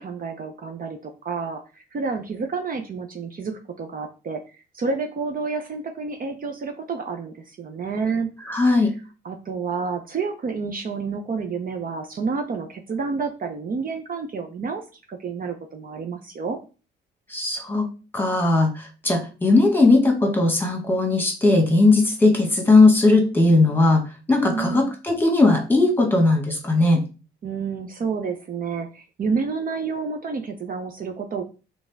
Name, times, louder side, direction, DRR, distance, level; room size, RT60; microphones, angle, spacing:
voice 1, 0.0-4.4 4.7-8.3 9.2-14.8 15.1-16.6 24.4-24.9 27.4-31.4, right 5 dB, 45° right, 5 dB, 0.7 m, -29 dB
voice 2, 8.5-8.9 17.3-17.8 18.1-27.0, left 2 dB, 10° left, 2 dB, 1.5 m, -18 dB
4.1 x 3.5 x 3.5 m, 0.33 s
cardioid pair, 90°, 20 cm